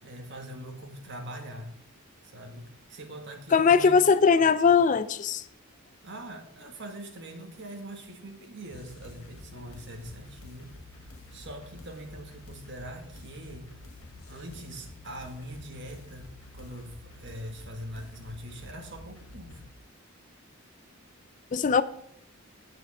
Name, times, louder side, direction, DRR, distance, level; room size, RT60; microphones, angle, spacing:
voice 1, 0.0-1.7 2.2-4.0 6.0-10.7 11.3-13.7 14.3-19.6, right 1 dB, 55° right, 1.7 m, -42 dB
voice 2, 3.5-5.4 21.5-21.8, left 5 dB, 35° left, 0.4 m, -20 dB
sound 1, 8.7-19.7, left 2 dB, 90° left, 1.3 m, -49 dB
9.2 x 6.5 x 5.5 m
head